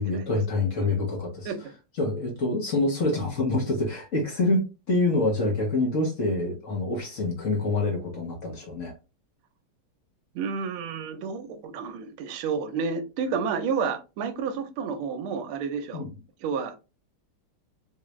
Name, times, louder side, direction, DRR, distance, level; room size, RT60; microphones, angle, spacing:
voice 1, 0.0-1.5 2.0-8.9 15.9-16.1, left 2 dB, 50° left, -1 dB, 1.0 m, -26 dB
voice 2, 10.3-16.0 16.4-16.8, right 5 dB, 80° right, 8 dB, 1.5 m, -30 dB
3.8 x 2.3 x 3.0 m, 0.29 s
omnidirectional pair, 2.4 m